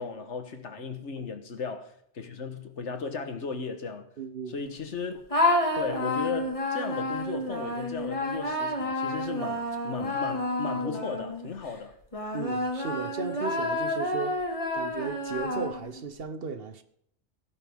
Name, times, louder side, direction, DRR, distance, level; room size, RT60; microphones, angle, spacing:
voice 1, 0.0-4.1 4.5-5.2 5.7-11.9, left 5 dB, 80° left, 1.6 m, -36 dB
voice 2, 4.2-4.5 12.3-16.8, right 5 dB, 55° right, 1.1 m, -36 dB
sound 1, 5.3-11.5 12.1-16.0, left 1 dB, 30° left, 2.1 m, -29 dB
16.5 x 10.5 x 3.6 m
omnidirectional pair, 1.2 m